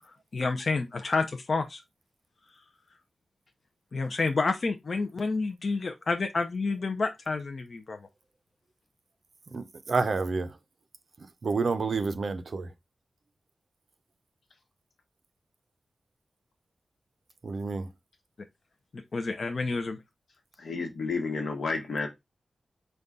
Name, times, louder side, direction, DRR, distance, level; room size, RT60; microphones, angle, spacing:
voice 1, 0.3-1.8 3.9-8.0 18.9-20.0, left 3 dB, 45° left, 0.4 m, -29 dB
voice 2, 9.5-10.5 11.4-12.7 17.4-17.9, right 4 dB, 50° right, 0.5 m, -29 dB
voice 3, 20.6-22.1, left 4 dB, 70° left, 1.1 m, -31 dB
5.3 x 2.2 x 3.6 m
wide cardioid pair, 180°, 0 cm